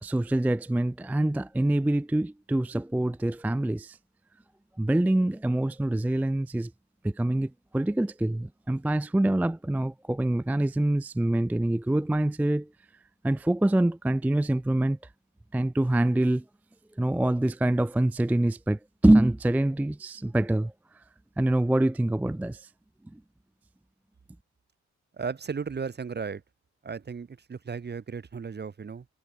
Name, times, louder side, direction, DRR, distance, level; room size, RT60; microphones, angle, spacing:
voice 1, 0.0-4.0 4.8-6.7 7.0-12.7 13.2-15.0 15.5-16.4 17.0-21.0 21.4-22.7 23.1-23.2, right 1 dB, 5° right, 0.4 m, -25 dB
voice 2, 25.1-26.4 26.8-29.1, right 5 dB, 35° right, 0.8 m, -35 dB
cardioid pair, 80°, 29 cm